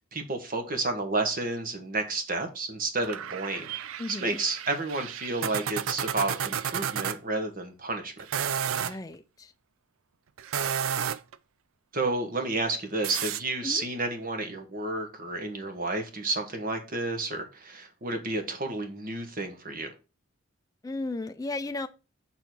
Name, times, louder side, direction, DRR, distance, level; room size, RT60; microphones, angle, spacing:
voice 1, 0.1-3.7 4.1-8.1 11.9-19.9, right 2 dB, 40° right, 1.3 m, -31 dB
sound 1, 3.0-7.2 8.2-9.0 10.4-11.4 13.0-13.4, right 8 dB, 70° right, 0.4 m, -32 dB
voice 2, 4.0-4.4 8.8-9.5 13.6-13.8 20.8-21.9, left 2 dB, 15° left, 0.3 m, -35 dB
6.9 x 3.9 x 6.0 m
head